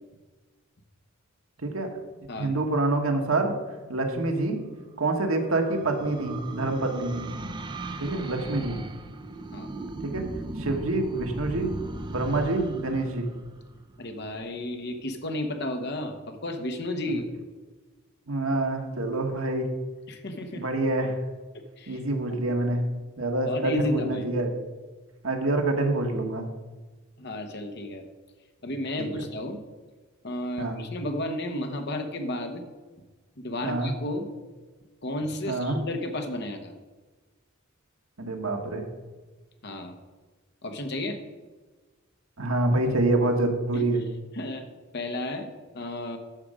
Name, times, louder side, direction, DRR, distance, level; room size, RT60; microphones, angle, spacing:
voice 1, 2.4-3.5 3.9-4.6 5.0-7.3 8.0-8.8 10.0-10.2 10.6-11.7 12.1-13.3 18.3-19.7 20.5-21.1 21.9-22.9 23.2-24.5 25.2-26.5 29.0-29.3 30.6-30.8 33.6-33.9 35.5-35.8 38.2-38.8 42.4-44.0, right 2 dB, 85° right, 3 dB, 1.5 m, -26 dB
sound 1, 4.7-14.2, right 2 dB, 20° right, 0.6 m, -38 dB
voice 2, 14.0-17.3 20.1-20.6 21.8-22.0 22.3-22.4 23.5-24.2 27.2-28.0 28.6-29.6 30.2-32.6 33.4-34.3 35.0-36.7 39.6-40.0 40.6-41.2 43.7-43.8 44.3-44.7 44.9-45.5 45.7-46.2, left 1 dB, 55° left, 5 dB, 1.2 m, -32 dB
12.0 x 6.7 x 5.0 m, 1.3 s
head